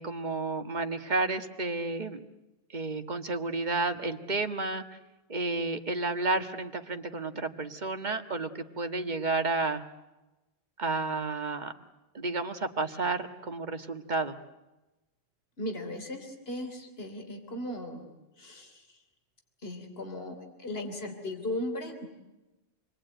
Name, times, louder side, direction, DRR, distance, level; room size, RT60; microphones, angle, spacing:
voice 1, 0.0-2.2 2.7-4.8 5.3-9.8 10.8-11.7 12.1-14.4, right 3 dB, 45° right, 7 dB, 1.7 m, -31 dB
voice 2, 15.6-18.1 18.4-19.0 19.6-22.1, left 1 dB, 65° left, 5 dB, 3.7 m, -37 dB
28.0 x 22.0 x 9.2 m, 1.0 s
omnidirectional pair, 1.1 m